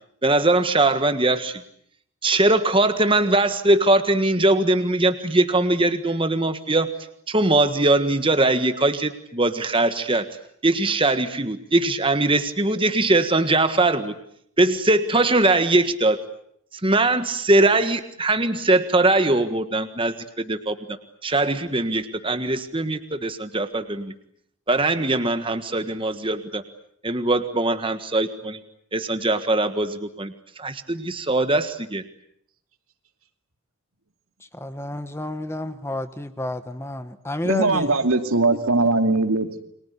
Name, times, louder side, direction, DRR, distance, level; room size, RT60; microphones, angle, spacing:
voice 1, 0.2-1.6 2.2-6.9 7.3-10.2 10.6-14.1 14.6-16.2 16.8-20.8 21.2-24.1 24.7-26.6 27.0-28.6 28.9-30.3 30.6-32.0, right 2 dB, 25° right, 9 dB, 1.5 m, -21 dB
voice 2, 34.5-37.9, left 1 dB, 10° left, 11 dB, 1.1 m, -30 dB
voice 3, 37.4-39.6, right 3 dB, 75° right, 7 dB, 2.6 m, -20 dB
29.5 x 23.5 x 8.3 m, 0.70 s
head